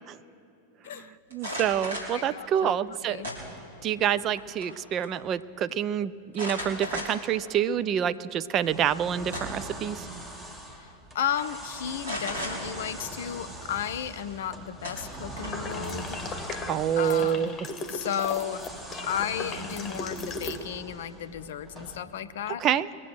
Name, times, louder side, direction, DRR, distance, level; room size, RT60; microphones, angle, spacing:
voice 1, 1.3-3.2 3.8-10.1 16.7-17.6 22.5-22.9, right 9 dB, 30° right, 14 dB, 0.4 m, -27 dB
sound 1, 1.3-2.2 3.2-3.8 4.2-4.8 5.0-5.1 6.3-7.3 7.9-8.0 9.0-9.7 10.7-10.9 11.2-11.5 12.0-12.5 14.3-14.4 14.8-15.7, equal, 70° right, 3.5 m, -36 dB
voice 2, 2.1-2.7 3.1-3.3 10.8-16.2 17.0-17.5 17.9-18.6 19.0-22.6, left 9 dB, 60° left, 12 dB, 0.6 m, -33 dB
sound 2, 8.6-22.0, right 1 dB, 15° right, 1.6 m, -42 dB
sound 3, 15.4-20.6, left 3 dB, 20° left, 1.2 m, -37 dB
22.0 x 7.6 x 6.3 m, 2.6 s
figure-of-eight pair, 90°, 0 cm